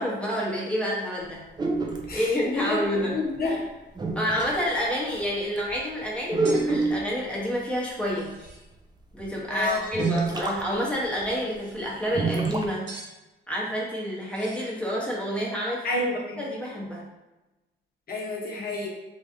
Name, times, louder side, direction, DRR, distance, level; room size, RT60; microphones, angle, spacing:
voice 1, 0.0-1.4 2.1-3.1 3.4-3.6 4.1-8.3 9.1-12.9 13.5-15.9 16.4-17.0, equal, 5° left, -5 dB, 1.0 m, -28 dB
sound 1, 1.6-2.2 3.4-3.5 4.0-4.6 5.1-5.3 5.6-5.7 6.3-7.1 8.5-8.6 9.2-9.3 9.9-10.6 10.9-11.0 11.2-11.3 12.1-12.7, right 3 dB, 20° right, 0.4 m, -26 dB
voice 2, 2.1-2.8 3.1-3.6 9.5-9.8 15.8-16.5 18.1-18.9, left 3 dB, 50° left, -2 dB, 0.9 m, -29 dB
sound 2, 6.4-6.7 8.0-8.7 9.6-10.2 11.3-11.9 12.9-13.1 14.3-14.8, right 2 dB, 70° right, 1.1 m, -45 dB
3.2 x 2.4 x 2.6 m, 1.0 s
cardioid pair, 90°, 20 cm